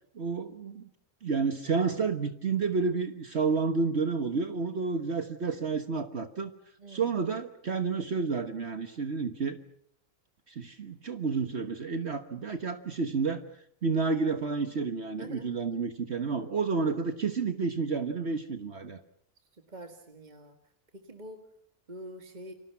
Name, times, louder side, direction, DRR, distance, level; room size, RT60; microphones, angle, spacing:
voice 1, 0.1-0.9 1.2-6.5 6.9-9.6 10.5-13.4 13.8-19.0, right 4 dB, 55° right, 8 dB, 1.6 m, -30 dB
voice 2, 15.2-15.5 19.7-20.6 20.9-21.4 21.9-22.5, right 1 dB, 35° right, 5 dB, 2.0 m, -45 dB
29.0 x 26.0 x 5.8 m, 0.64 s
omnidirectional pair, 1.4 m